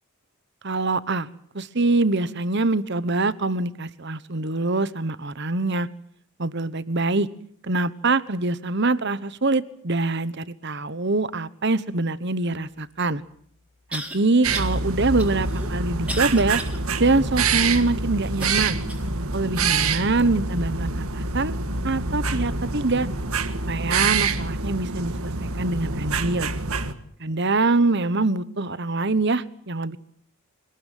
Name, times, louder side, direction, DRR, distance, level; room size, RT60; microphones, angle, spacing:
voice 1, 0.6-1.3 1.5-5.9 6.4-7.3 7.6-13.2 13.9-16.6 17.0-18.8 19.3-21.5 21.8-23.1 23.7-26.5 27.2-30.0, right 3 dB, 50° right, 16 dB, 1.2 m, -24 dB
sound 1, 12.9-13.0 13.9-14.2 14.5-14.8 15.2-16.8 17.3-17.4 18.4-19.1 19.7-19.8 20.6-20.7, right 1 dB, 5° right, 3.7 m, -36 dB
sound 2, 14.4-26.9, right 4 dB, 75° right, 1.9 m, -26 dB
25.5 x 19.5 x 9.3 m, 0.63 s
head